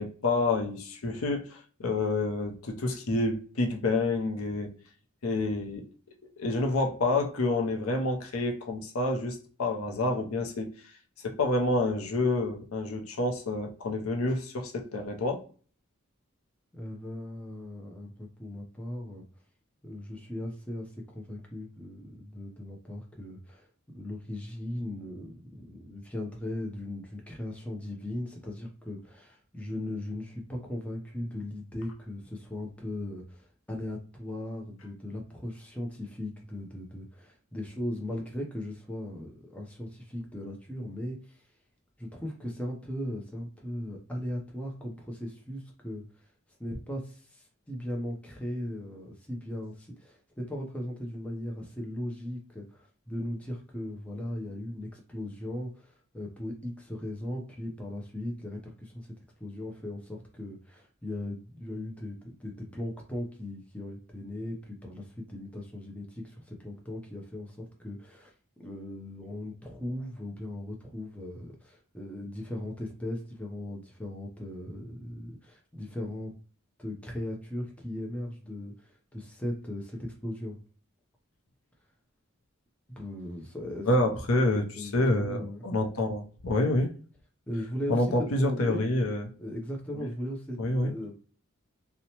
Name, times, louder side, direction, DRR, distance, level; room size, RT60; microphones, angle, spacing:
voice 1, 0.0-4.7 5.2-5.9 6.4-10.7 11.2-15.4 83.9-86.9 87.9-89.2 90.6-90.9, left 2 dB, 80° left, 0.6 m, -28 dB
voice 2, 16.7-19.3 19.8-41.5 42.0-46.3 46.6-59.1 59.4-68.3 68.6-76.3 76.8-80.6 82.9-83.9 84.8-85.6 87.5-88.9 89.4-91.1, left 1 dB, 5° left, 0.5 m, -38 dB
2.8 x 2.1 x 2.8 m
head